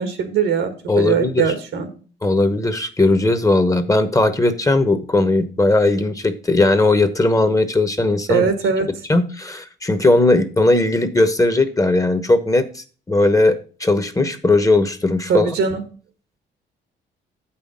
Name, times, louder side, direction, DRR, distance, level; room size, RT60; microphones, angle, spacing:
voice 1, 0.0-1.9 8.3-8.9 15.3-15.8, right 6 dB, 85° right, 7 dB, 1.7 m, -20 dB
voice 2, 0.9-1.5 2.2-8.4 9.1-15.5, left 2 dB, 15° left, 10 dB, 0.9 m, -18 dB
8.0 x 5.7 x 5.2 m, 0.38 s
cardioid pair, 90°, 20 cm